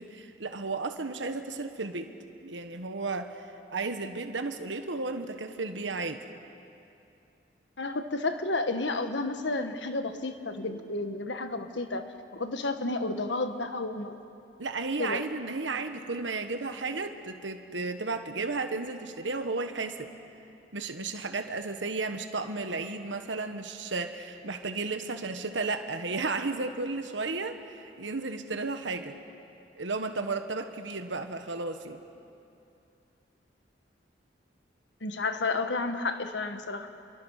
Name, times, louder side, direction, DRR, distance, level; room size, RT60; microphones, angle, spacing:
voice 1, 0.0-2.1 2.4-6.2 14.6-20.1 20.7-29.1 29.8-32.0, right 3 dB, 85° right, 7 dB, 1.4 m, -33 dB
voice 2, 7.8-14.2 15.0-15.2 35.0-36.9, left 3 dB, 75° left, 8 dB, 1.5 m, -31 dB
28.5 x 23.5 x 6.6 m, 2.6 s
head